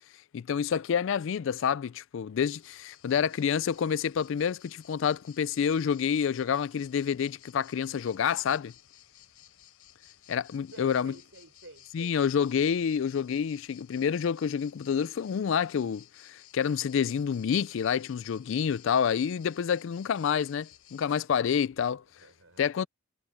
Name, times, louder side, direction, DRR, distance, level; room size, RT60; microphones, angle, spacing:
voice 1, 0.3-8.7 10.3-11.1 11.9-22.0 22.6-22.9, left 7 dB, 60° left, 0.3 m, -28 dB
sound 1, 2.5-21.2, left 12 dB, 85° left, 4.8 m, -56 dB
voice 2, 3.3-3.7 10.7-12.2 22.2-22.6, right 2 dB, 65° right, 6.2 m, -52 dB
head